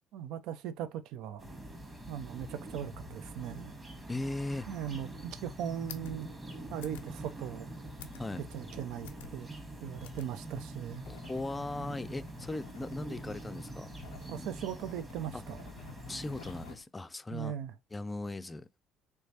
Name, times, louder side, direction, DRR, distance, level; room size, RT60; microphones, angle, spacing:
voice 1, 0.1-1.4 2.1-3.7 4.7-6.3 6.7-7.7 8.3-9.5 9.8-11.0 14.3-15.7 17.3-17.7, right 9 dB, 70° right, 0.4 m, -39 dB
sound 1, 1.4-16.7, right 1 dB, 25° right, 1.5 m, -45 dB
voice 2, 4.1-4.7 8.2-8.4 11.1-13.9 15.3-15.4 16.1-17.5 17.9-18.7, left 2 dB, 20° left, 0.4 m, -38 dB
sound 2, 5.6-16.8, left 9 dB, 85° left, 0.4 m, -53 dB
3.3 x 3.1 x 2.7 m
hypercardioid pair, 60°, 0 cm